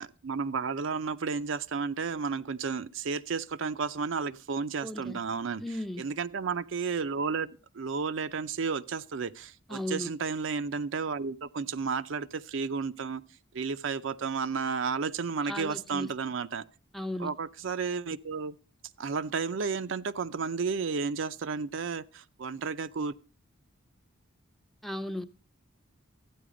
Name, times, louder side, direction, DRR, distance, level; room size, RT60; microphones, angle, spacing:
voice 1, 0.0-5.6 6.0-13.2 13.5-16.6 17.2-18.6 19.0-23.1, right 5 dB, 65° right, 0.5 m, -32 dB
voice 2, 4.8-5.2 5.6-6.1 9.7-10.1 15.4-16.1 16.9-17.3 24.8-25.2, left 1 dB, ahead, 0.5 m, -36 dB
13.0 x 9.2 x 4.9 m
head